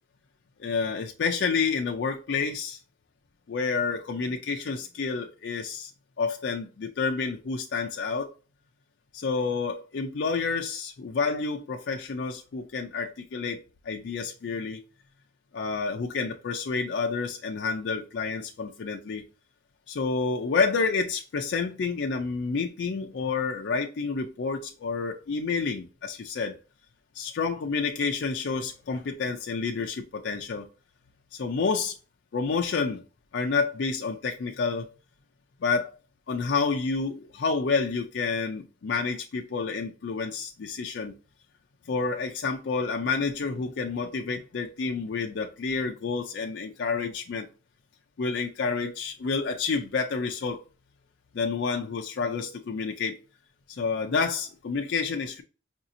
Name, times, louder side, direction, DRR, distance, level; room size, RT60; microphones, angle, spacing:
voice 1, 0.6-2.8 3.5-5.9 6.2-8.3 9.1-13.6 13.8-14.8 15.5-19.2 19.9-26.6 27.1-30.7 31.3-32.0 32.3-33.0 33.3-34.9 35.6-35.9 36.3-41.1 41.9-47.5 48.2-50.6 51.3-53.2 53.7-55.4, left 4 dB, 60° left, 0.4 m, -29 dB
4.8 x 2.7 x 2.6 m
head